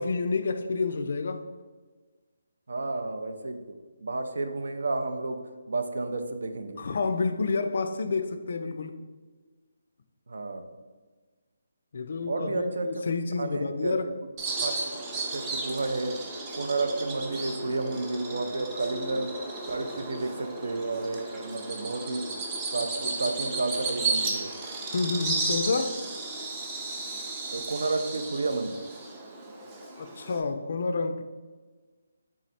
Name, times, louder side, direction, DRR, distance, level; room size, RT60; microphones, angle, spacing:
voice 1, 0.0-1.4 6.8-8.9 11.9-14.1 24.9-26.0 30.0-31.2, left 4 dB, 55° left, 9 dB, 0.3 m, -29 dB
voice 2, 2.7-3.7 4.0-5.4 5.7-6.8 10.3-10.7 12.3-13.0 13.4-14.0 14.6-14.8 15.3-16.1 16.5-19.3 19.6-22.3 22.7-24.5 27.5-28.8, right 3 dB, 75° right, 7 dB, 0.5 m, -31 dB
Bird vocalization bird call bird song, 14.4-30.4, right 3 dB, 15° right, 0.4 m, -34 dB
3.7 x 3.2 x 4.1 m, 1.4 s
hypercardioid pair, 170°, 0 cm